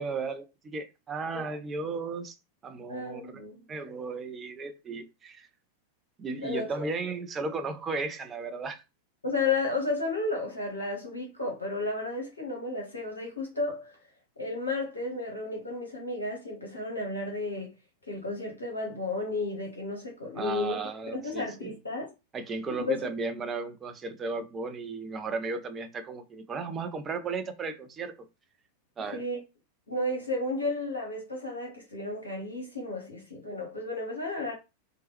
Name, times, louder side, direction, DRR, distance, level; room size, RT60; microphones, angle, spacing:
voice 1, 0.0-2.4 2.6-3.4 3.7-5.5 6.2-8.8 20.4-21.7 22.3-28.1 29.0-29.2, right 4 dB, 20° right, 0.5 m, -35 dB
voice 2, 2.9-3.7 6.4-6.9 9.2-14.0 14.4-17.7 18.1-20.8 21.1-22.1 22.7-23.0 29.1-29.4 29.9-34.5, left 2 dB, 75° left, 0.8 m, -33 dB
3.0 x 2.1 x 3.0 m
figure-of-eight pair, 90°, 0 cm